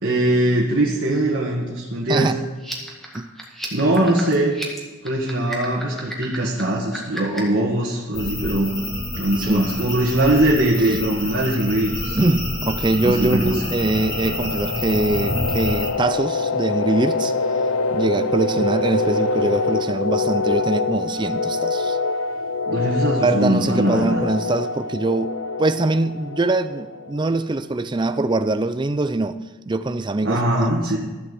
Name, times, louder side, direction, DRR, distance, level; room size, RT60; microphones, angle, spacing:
voice 1, 0.0-2.3 3.7-4.6 5.0-8.8 9.1-12.2 13.0-13.5 22.7-24.2 30.2-31.0, right 1 dB, 55° right, -4 dB, 1.8 m, -21 dB
voice 2, 2.1-2.5 3.1-3.3 4.0-4.1 9.4-9.7 12.2-17.3 17.9-22.0 23.1-30.9, right 2 dB, 20° right, 12 dB, 0.5 m, -23 dB
Beatboxer squirrel, 2.6-7.6, equal, ahead, 1.8 m, -34 dB
sound 1, 8.1-15.9, left 1 dB, 55° left, 4.2 m, -28 dB
sound 2, 12.8-27.4, left 3 dB, 80° left, 0.5 m, -25 dB
13.0 x 7.7 x 6.8 m, 1.2 s
head